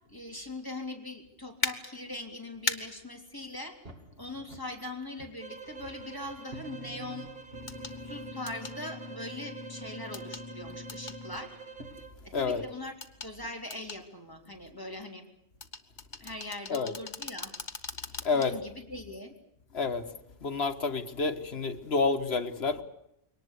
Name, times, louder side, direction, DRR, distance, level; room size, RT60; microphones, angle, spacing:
voice 1, 0.1-3.8 4.2-7.3 8.0-11.6 12.2-13.0 13.2-15.2 16.2-17.5 18.3-19.3, left 2 dB, 20° left, 2 dB, 3.6 m, -41 dB
sound 1, 1.6-1.7 2.7-2.8 4.8-4.9 7.7-8.0 8.5-8.8 10.1-10.5 10.9-11.2 13.0-13.3 13.7-14.0 15.6-18.5 18.9-19.1, left 4 dB, 45° left, 1.6 m, -36 dB
sound 2, 3.8-4.9 5.2-6.1 6.5-11.9, left 2 dB, 65° right, 2.7 m, -46 dB
sound 3, 5.4-12.2, right 6 dB, 45° right, 2.3 m, -47 dB
voice 2, 20.4-22.8, left 4 dB, 75° left, 7 dB, 1.7 m, -29 dB
23.0 x 19.0 x 8.4 m, 0.80 s
omnidirectional pair, 1.1 m